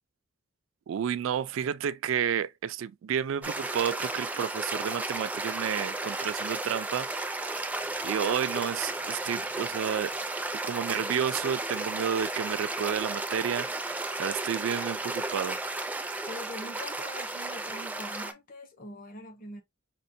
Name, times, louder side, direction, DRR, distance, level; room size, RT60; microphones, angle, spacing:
voice 1, 0.9-7.5 8.0-10.1 10.6-15.6, right 8 dB, 85° right, 0.3 m, -31 dB
sound 1, 3.4-18.3, right 2 dB, 10° right, 0.3 m, -34 dB
voice 2, 16.3-19.6, left 1 dB, 45° left, 0.8 m, -43 dB
5.1 x 2.1 x 2.6 m
head